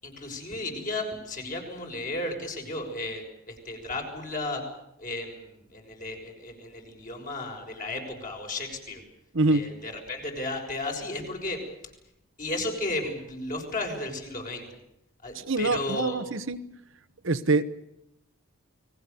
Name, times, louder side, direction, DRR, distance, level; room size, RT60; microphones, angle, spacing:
voice 1, 0.0-4.6 5.0-9.0 9.5-11.6 12.4-14.7 15.2-16.2, left 2 dB, 40° left, 2 dB, 6.5 m, -34 dB
voice 2, 9.3-9.7 15.3-16.6 17.2-17.6, right 3 dB, 65° right, 12 dB, 1.1 m, -25 dB
29.5 x 20.5 x 6.9 m, 0.83 s
head